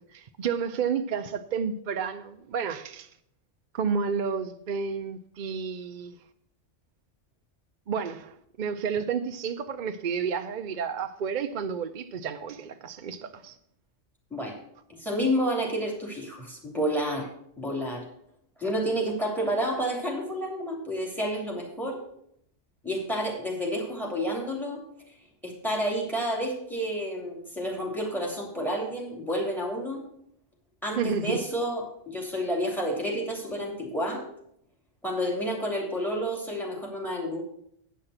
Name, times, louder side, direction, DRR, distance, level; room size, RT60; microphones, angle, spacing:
voice 1, 0.0-3.1 3.7-6.2 7.9-13.6 30.9-31.4, right 6 dB, 55° right, 0.5 m, -31 dB
voice 2, 14.9-17.3 17.6-18.0 18.6-22.0 22.8-24.8 25.4-30.0 30.8-34.2 35.0-37.4, equal, ahead, 2.9 m, -30 dB
9.4 x 5.8 x 7.8 m
omnidirectional pair, 1.3 m